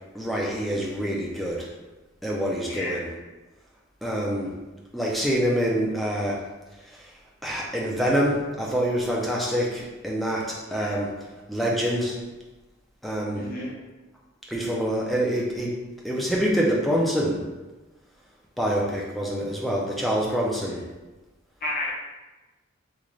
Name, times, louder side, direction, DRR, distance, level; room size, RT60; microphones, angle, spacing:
voice 1, 0.1-1.7 2.2-3.1 4.0-4.5 4.9-6.4 7.4-11.1 11.5-12.2 13.0-13.5 14.5-15.7 16.0-17.4 18.6-20.8, equal, ahead, -3 dB, 0.4 m, -26 dB
voice 2, 2.7-3.0 10.6-10.9 13.3-13.7 21.6-21.9, left 2 dB, 45° left, -6 dB, 0.8 m, -31 dB
3.7 x 2.4 x 3.1 m, 1.1 s
head